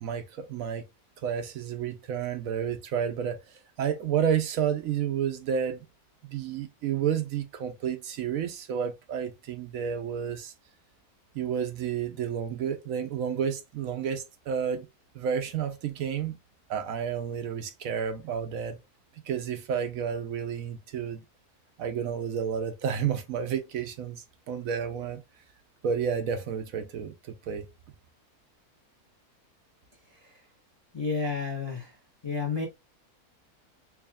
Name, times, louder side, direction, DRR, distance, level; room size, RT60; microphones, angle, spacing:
voice 1, 0.0-0.8 1.2-3.4 3.8-5.8 6.2-10.5 11.3-14.9 15.1-16.4 16.7-18.8 19.3-21.2 21.8-25.2 25.8-27.7, right 8 dB, 70° right, 1.0 m, -31 dB
voice 2, 30.1-30.4 30.9-32.0 32.2-32.7, left 5 dB, 20° left, 0.9 m, -31 dB
4.7 x 2.8 x 2.3 m
omnidirectional pair, 1.6 m